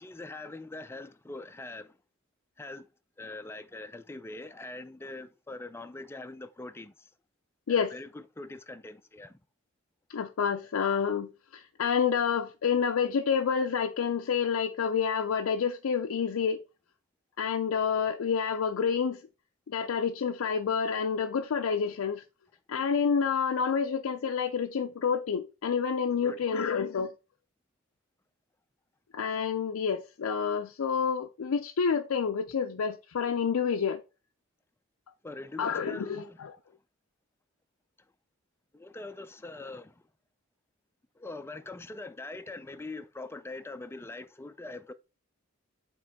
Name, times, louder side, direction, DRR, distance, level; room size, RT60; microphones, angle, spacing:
voice 1, 0.0-1.9 2.6-2.9 3.2-6.9 7.7-9.4 26.2-26.4 35.2-36.4 38.7-39.9 41.2-44.9, left 2 dB, 10° left, 0.4 m, -42 dB
voice 2, 10.1-16.6 17.4-19.2 19.7-22.2 22.7-27.1 29.1-34.0 35.6-36.5, left 6 dB, 85° left, 0.4 m, -28 dB
7.6 x 3.1 x 4.0 m
head